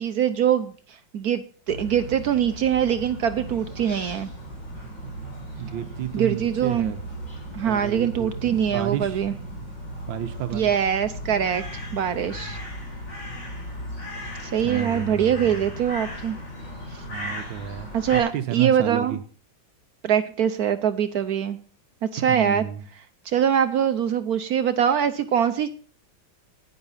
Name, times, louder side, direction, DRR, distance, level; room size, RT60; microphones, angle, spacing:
voice 1, 0.0-4.3 6.1-6.9 7.5-9.3 10.5-11.6 11.9-12.6 14.4-16.4 17.9-19.2 20.0-21.6 22.0-22.6 23.2-25.7, right 8 dB, 60° right, 11 dB, 1.1 m, -23 dB
sound 1, 1.7-18.2, equal, 40° left, 4.6 m, -36 dB
voice 2, 5.6-7.0 7.6-9.2 10.1-10.7 12.2-12.9 14.6-15.6 17.1-19.2 22.3-22.8, right 11 dB, 80° right, 9 dB, 1.6 m, -32 dB
10.0 x 9.8 x 5.5 m, 0.39 s
omnidirectional pair, 2.1 m